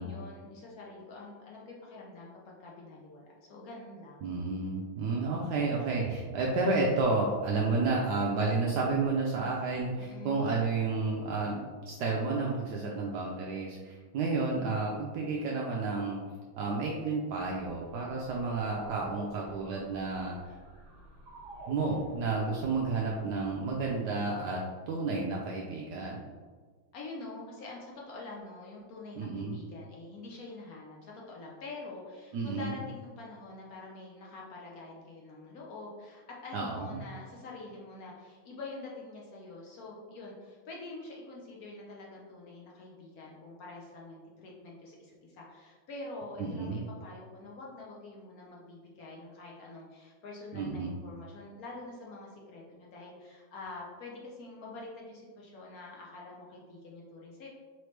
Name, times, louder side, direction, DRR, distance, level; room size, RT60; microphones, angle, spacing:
voice 1, 0.0-4.2 10.0-10.6 26.9-57.5, left 2 dB, 70° left, -3 dB, 0.9 m, -46 dB
voice 2, 4.2-16.2 16.6-20.6 21.7-26.3 29.2-29.6 32.3-32.8 36.5-37.0 46.4-46.8 50.5-51.0, right 3 dB, 80° right, -2 dB, 0.9 m, -31 dB
sound 1, 17.3-24.0, right 2 dB, 55° right, 1.7 m, -51 dB
4.1 x 3.2 x 3.1 m, 1.5 s
omnidirectional pair, 2.3 m